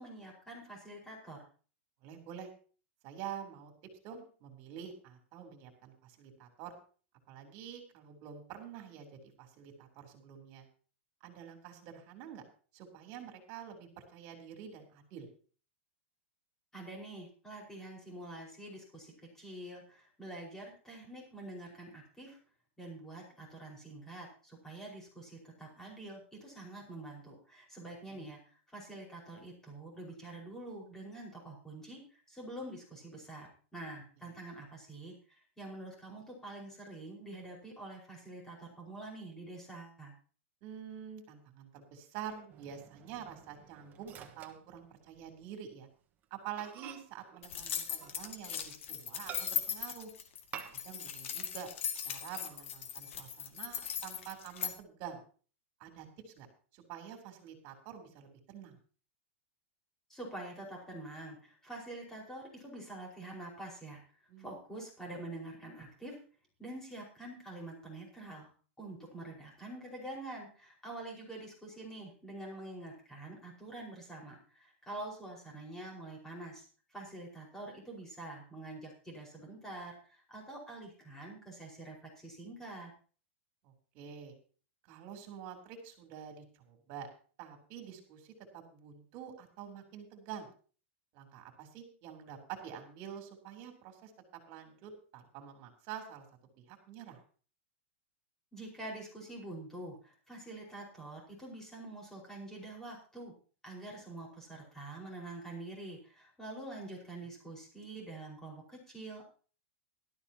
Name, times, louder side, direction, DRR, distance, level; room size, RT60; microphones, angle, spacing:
voice 1, 0.0-1.4 16.7-22.4 22.8-40.1 60.1-64.0 64.4-66.2 66.6-68.5 68.8-82.9 98.5-103.3 103.6-109.3, right 2 dB, 5° left, -2 dB, 5.0 m, -46 dB
voice 2, 2.0-2.5 3.0-3.7 4.0-6.7 7.3-10.7 11.2-12.4 12.7-15.3 28.1-28.3 40.6-45.9 46.3-50.1 50.7-51.7 52.1-55.2 55.8-56.5 56.7-58.8 64.3-64.5 83.6-84.4 84.8-87.1 87.4-90.5 91.1-96.3 96.7-97.2, right 9 dB, 40° right, 5 dB, 3.5 m, -47 dB
Microwave oven, 42.5-45.4 45.7-45.9 46.2-46.3 46.6-48.6 49.3-49.9 50.5-51.1 51.4-51.5 52.0-52.7 53.1-53.8, right 9 dB, 25° right, 1.4 m, -51 dB
sound 1, 47.4-54.7, left 8 dB, 75° left, 2.1 m, -38 dB
17.0 x 12.5 x 2.9 m, 0.40 s
supercardioid pair, 150°, 7 cm